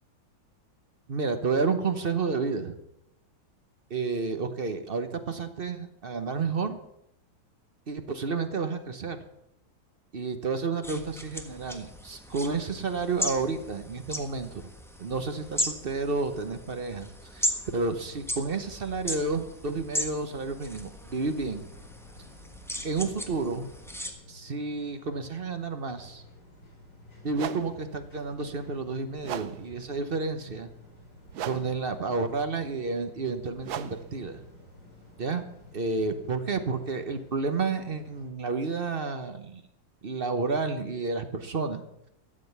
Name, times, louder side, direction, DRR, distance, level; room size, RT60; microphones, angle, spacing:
voice 1, 1.1-2.7 3.9-6.8 7.9-9.2 10.1-14.5 15.0-21.7 22.8-23.7 24.3-26.2 27.2-30.7 31.5-34.4 35.2-35.4 35.7-39.6 40.0-41.8, right 4 dB, 45° right, 8 dB, 0.7 m, -30 dB
sound 1, 10.8-24.1, equal, ahead, 0.9 m, -37 dB
sound 2, 21.0-38.3, left 2 dB, 60° left, 4.1 m, -52 dB
sound 3, 26.5-26.7 27.3-36.1, right 10 dB, 65° right, 1.1 m, -41 dB
13.0 x 7.7 x 8.0 m, 0.82 s
omnidirectional pair, 2.0 m